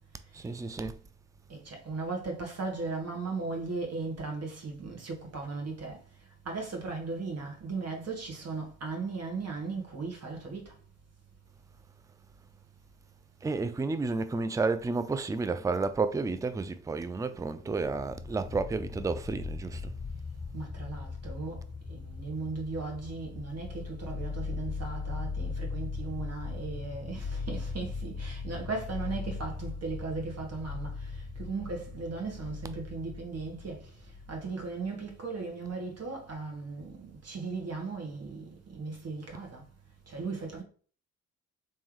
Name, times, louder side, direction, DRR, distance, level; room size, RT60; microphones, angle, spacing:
voice 1, 0.3-1.0 13.4-19.9, right 4 dB, 10° right, 0.4 m, -31 dB
voice 2, 1.5-6.0 6.4-10.7 20.5-21.6 21.9-33.9 34.3-39.6 40.1-40.6, right 3 dB, 45° right, 1.6 m, -37 dB
sound 1, 17.6-34.9, left 4 dB, 30° left, 1.5 m, -39 dB
3.5 x 3.2 x 3.0 m
hypercardioid pair, 45°, 34 cm